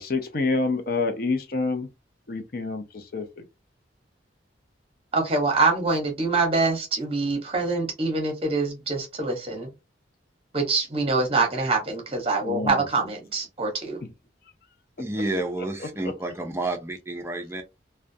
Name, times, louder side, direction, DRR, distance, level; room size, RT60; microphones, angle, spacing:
voice 1, 0.0-1.9 2.3-2.8 3.1-3.3 12.4-12.8, left 3 dB, 50° left, 0.5 m, -27 dB
voice 2, 5.1-9.7 10.5-14.0, right 3 dB, 30° right, 0.8 m, -25 dB
voice 3, 15.0-17.6, right 2 dB, 15° right, 0.3 m, -30 dB
2.4 x 2.1 x 2.6 m
head